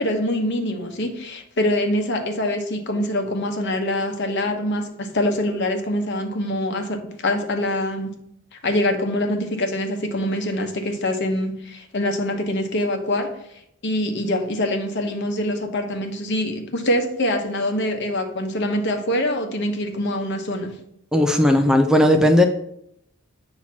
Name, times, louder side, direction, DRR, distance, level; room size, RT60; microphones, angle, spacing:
voice 1, 0.0-8.1 8.5-13.3 13.8-20.8, left 1 dB, 55° left, 5 dB, 1.0 m, -24 dB
voice 2, 21.1-22.4, left 1 dB, 5° right, 5 dB, 0.4 m, -16 dB
8.5 x 2.9 x 5.9 m, 0.74 s
head